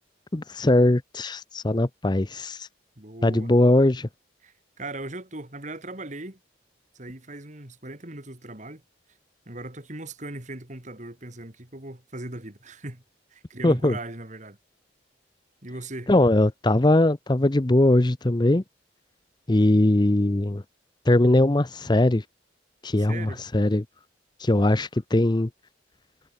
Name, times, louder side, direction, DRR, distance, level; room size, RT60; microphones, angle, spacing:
voice 1, 0.3-2.7 3.2-4.1 13.6-14.0 16.1-18.6 19.5-20.6 21.1-22.2 22.8-23.8 24.4-25.5, left 1 dB, 25° left, 0.7 m, -20 dB
voice 2, 3.0-3.5 4.4-6.4 6.9-8.8 9.5-13.0 13.3-14.6 15.6-16.1 23.0-23.4, right 2 dB, 40° right, 3.1 m, -38 dB
head